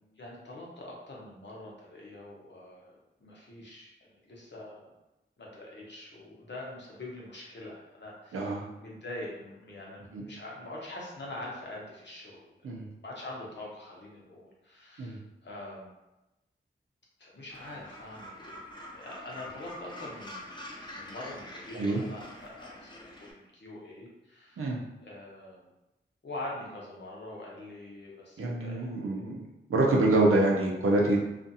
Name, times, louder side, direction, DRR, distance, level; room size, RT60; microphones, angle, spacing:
voice 1, 0.2-4.9 5.4-12.7 13.0-15.9 17.2-24.6 25.0-25.7 26.2-29.2, left 1 dB, 60° left, -4 dB, 0.9 m, -44 dB
voice 2, 8.3-8.6 10.1-10.2 12.6-12.8 15.0-15.2 21.7-22.0 24.6-24.8 28.4-29.4 29.7-31.2, right 2 dB, 90° right, -2 dB, 0.6 m, -26 dB
Gull seagull, 17.5-23.3, left 1 dB, 20° left, 0.7 m, -45 dB
2.5 x 2.5 x 2.6 m, 0.97 s
cardioid pair, 45°, 21 cm